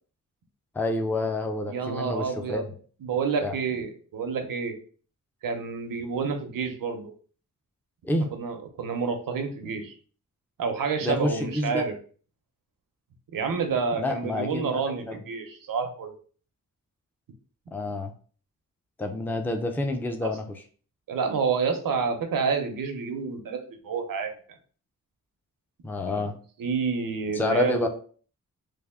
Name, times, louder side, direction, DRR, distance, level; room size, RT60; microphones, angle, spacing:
voice 1, 0.7-2.7 3.4-3.6 8.0-8.3 11.0-11.8 14.0-15.2 17.7-18.1 19.0-20.6 25.8-26.3 27.3-27.9, left 2 dB, 5° left, 5 dB, 0.4 m, -28 dB
voice 2, 1.7-2.7 3.0-4.8 5.4-7.1 8.3-9.9 10.6-11.9 13.3-16.1 20.2-20.3 21.1-24.3 26.1-26.3 26.6-27.9, right 5 dB, 90° right, 5 dB, 0.8 m, -29 dB
3.4 x 2.5 x 3.5 m, 0.43 s
wide cardioid pair, 135°, 33 cm